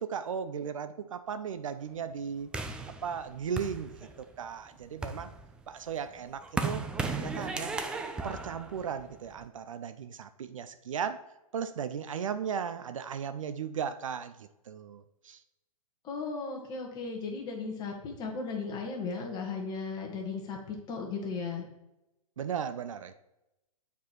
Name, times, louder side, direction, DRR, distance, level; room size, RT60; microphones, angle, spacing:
voice 1, 0.0-2.5 3.0-5.3 5.7-6.8 7.1-7.8 8.2-11.2 11.5-15.4 22.4-23.2, right 7 dB, 60° right, 11 dB, 0.5 m, -36 dB
sound 1, 2.5-4.4 4.8-9.5, right 4 dB, 5° right, 0.3 m, -36 dB
voice 2, 16.0-21.6, left 4 dB, 20° left, 1 dB, 1.6 m, -36 dB
8.1 x 4.7 x 4.3 m, 0.93 s
figure-of-eight pair, 115°, 19 cm